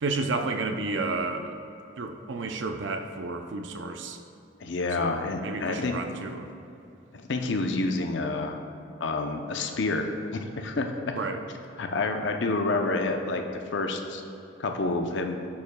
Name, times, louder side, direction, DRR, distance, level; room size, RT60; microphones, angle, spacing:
voice 1, 0.0-1.5 2.0-4.2 5.0-6.5 11.2-11.4, right 3 dB, 70° right, 7 dB, 0.5 m, -31 dB
voice 2, 4.6-6.0 7.1-8.6 9.0-11.2 11.8-14.2 14.6-15.4, left 3 dB, 65° left, 4 dB, 0.6 m, -28 dB
9.4 x 7.1 x 2.2 m, 2.8 s
head